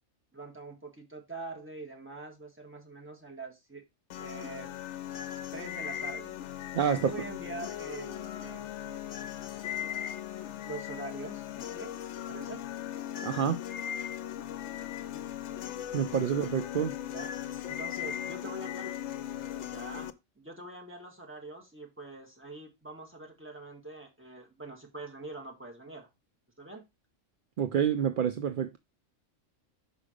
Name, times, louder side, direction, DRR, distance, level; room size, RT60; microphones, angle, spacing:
voice 1, 0.3-3.8 4.2-4.7 5.5-9.0 9.8-9.9 10.6-12.6 17.0-17.4 17.7-19.0 19.6-26.1 26.6-26.9, right 2 dB, 10° right, 1.8 m, -44 dB
sound 1, 4.1-20.1, left 10 dB, 70° left, 0.9 m, -38 dB
voice 2, 6.7-7.1 13.2-13.6 15.9-16.9 27.6-28.8, right 8 dB, 60° right, 0.6 m, -28 dB
5.8 x 4.9 x 5.0 m
omnidirectional pair, 1.3 m